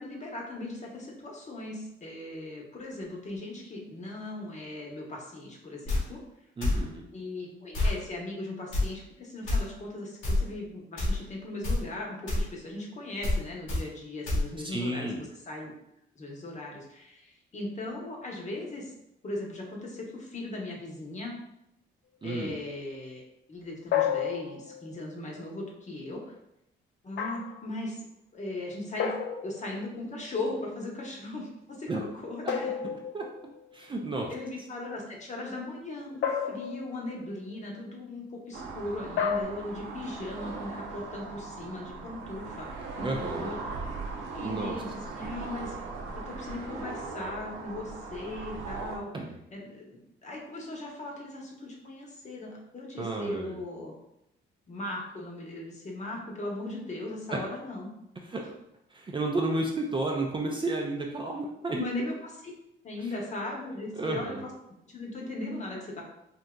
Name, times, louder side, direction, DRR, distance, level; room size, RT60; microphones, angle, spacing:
voice 1, 0.0-6.2 7.1-15.8 16.2-18.9 19.2-21.3 22.2-23.2 23.5-26.3 27.0-28.0 28.3-29.1 29.4-32.7 34.3-43.6 44.3-45.7 46.2-49.1 49.5-53.9 54.7-57.9 61.8-62.5 62.8-64.5 64.8-66.0, left 2 dB, 35° left, -1 dB, 0.9 m, -38 dB
sound 1, 5.9-6.0 6.6-6.8 7.7-8.0 8.7-8.9 9.5-9.6 10.2-10.4 11.0-11.2 11.6-11.8 12.3-12.4 13.2-13.4 13.7-13.8 14.3-14.4, left 2 dB, 80° left, 1.3 m, -26 dB
voice 2, 6.6-7.0 14.6-15.2 22.2-22.5 31.9-32.0 33.1-33.3 33.7-34.3 43.0-43.5 44.4-44.8 49.1-49.3 53.0-53.6 57.3-57.4 58.3-58.4 58.9-61.9 64.0-64.4, right 2 dB, 25° right, 0 dB, 0.4 m, -31 dB
sound 2, 23.9-25.0 27.2-27.7 29.0-29.9 32.5-33.6 36.2-37.1 39.2-39.4, left 8 dB, 65° left, 0.4 m, -31 dB
sound 3, 38.5-49.0, right 4 dB, 85° right, 0.7 m, -39 dB
3.7 x 2.7 x 2.2 m, 0.81 s
cardioid pair, 90°, 20 cm